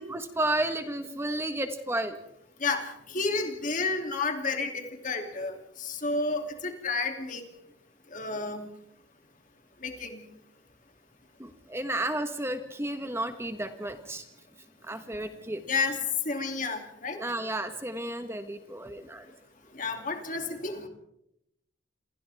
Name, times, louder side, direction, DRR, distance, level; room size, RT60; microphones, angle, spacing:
voice 1, 0.0-2.2 11.4-14.2 14.8-15.6 17.2-19.3, right 1 dB, 15° right, 8 dB, 1.3 m, -32 dB
voice 2, 3.1-5.5 5.8-7.4 8.1-8.6 9.8-10.2 15.7-16.0 16.3-17.2 19.8-20.9, left 3 dB, 40° left, 5 dB, 2.8 m, -31 dB
28.5 x 27.5 x 3.5 m, 0.78 s
head